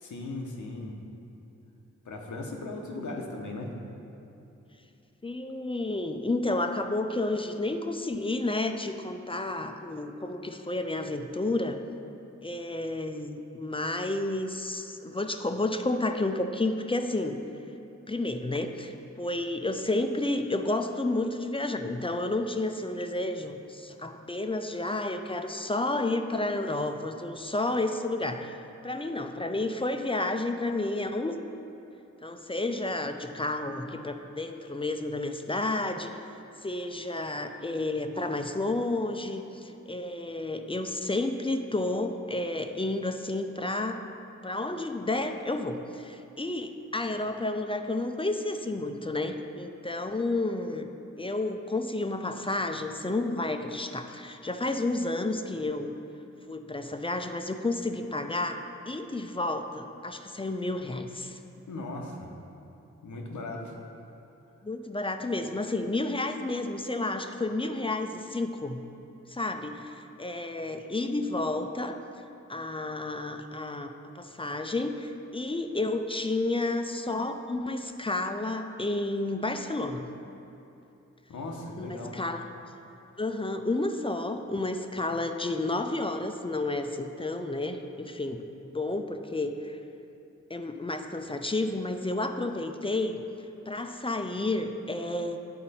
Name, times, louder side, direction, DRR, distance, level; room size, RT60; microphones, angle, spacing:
voice 1, 0.0-0.9 2.1-3.7 61.7-62.3 63.0-63.8 81.3-82.2, left 2 dB, 85° left, 0 dB, 0.9 m, -37 dB
voice 2, 5.2-11.8 12.4-17.4 18.1-28.6 28.8-31.4 32.2-36.2 36.6-44.1 44.4-50.9 51.2-55.9 56.5-61.4 64.6-68.8 69.3-72.0 72.5-80.1 81.8-82.4 83.2-89.8 90.5-93.2 93.7-95.4, left 2 dB, 20° left, 6 dB, 0.4 m, -31 dB
8.8 x 4.3 x 4.1 m, 3.0 s
cardioid pair, 45°, 29 cm